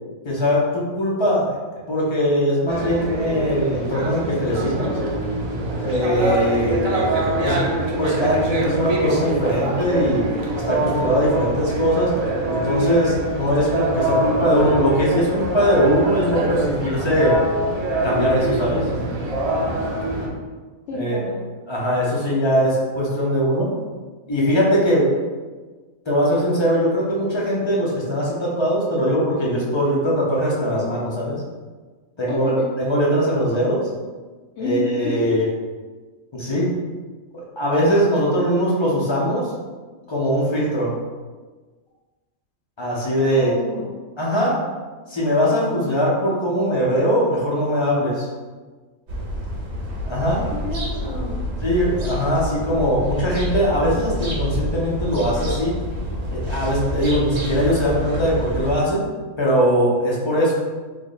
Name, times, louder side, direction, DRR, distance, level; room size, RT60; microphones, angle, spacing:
voice 1, 0.2-1.6 1.9-4.9 5.8-10.2 10.5-12.1 12.5-17.4 18.0-18.9 20.9-21.2 21.7-23.7 24.3-25.1 26.1-31.4 32.2-33.8 34.6-35.5 36.3-36.7 37.3-39.5 40.1-40.9 42.8-43.5 44.2-44.5 45.1-48.3 50.0-50.4 51.6-55.7 56.3-59.0 59.4-60.5, equal, 35° left, -5 dB, 0.4 m, -21 dB
sound 1, 2.7-20.3, right 1 dB, 85° right, 0.3 m, -24 dB
voice 2, 20.9-21.4 32.3-32.5 34.6-35.4 43.3-43.9 50.3-51.4, left 2 dB, 65° left, -3 dB, 0.8 m, -29 dB
sound 2, 49.1-58.8, equal, 60° right, 0.9 m, -28 dB
3.2 x 2.1 x 3.8 m, 1.4 s
omnidirectional pair, 1.4 m